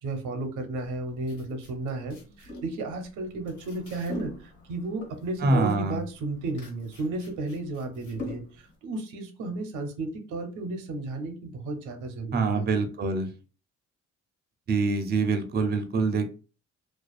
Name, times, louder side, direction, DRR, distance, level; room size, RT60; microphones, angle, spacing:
voice 1, 0.0-12.7, right 2 dB, 85° right, 6 dB, 0.6 m, -33 dB
sound 1, 0.8-8.8, left 1 dB, 75° left, 1.5 m, -43 dB
voice 2, 5.4-6.0 12.3-13.3 14.7-16.3, right 3 dB, 35° right, 7 dB, 0.5 m, -25 dB
2.4 x 2.3 x 2.3 m, 0.35 s
cardioid pair, 90°, 30 cm